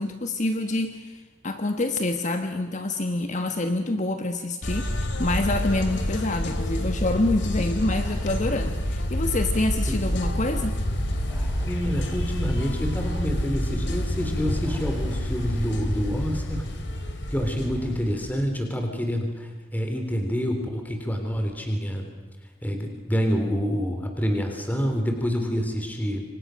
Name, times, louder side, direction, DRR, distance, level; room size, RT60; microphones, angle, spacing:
voice 1, 0.0-10.8, left 2 dB, 40° left, 7 dB, 1.3 m, -27 dB
sound 1, 4.6-18.4, equal, 75° left, 3.2 m, -28 dB
sound 2, 5.2-17.9, equal, 10° right, 3.8 m, -43 dB
voice 2, 11.7-16.7 17.3-22.0 22.6-26.2, equal, 10° left, 4 dB, 3.5 m, -27 dB
29.0 x 25.0 x 6.4 m, 1.3 s
head